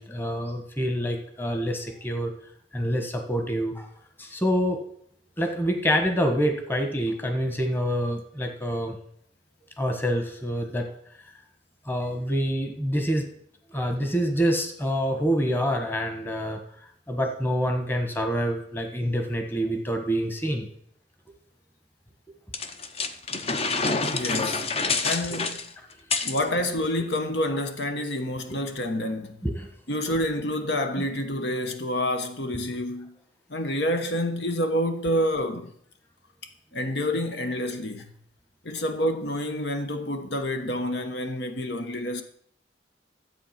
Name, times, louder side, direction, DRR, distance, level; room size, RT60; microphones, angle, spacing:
voice 1, 0.0-2.3 2.7-3.9 4.2-4.8 5.4-9.0 9.8-10.9 11.8-13.3 13.7-20.7 25.3-25.5 29.4-29.7 31.0-31.1, equal, 10° left, 1.4 m, -27 dB
sound 1, 22.5-26.4, left 4 dB, 35° left, 0.8 m, -27 dB
voice 2, 24.1-24.7 25.0-25.6 26.2-29.4 29.9-33.1 33.5-35.7 36.7-38.1 38.6-42.2, left 1 dB, 70° left, 1.2 m, -28 dB
12.5 x 7.9 x 5.8 m
head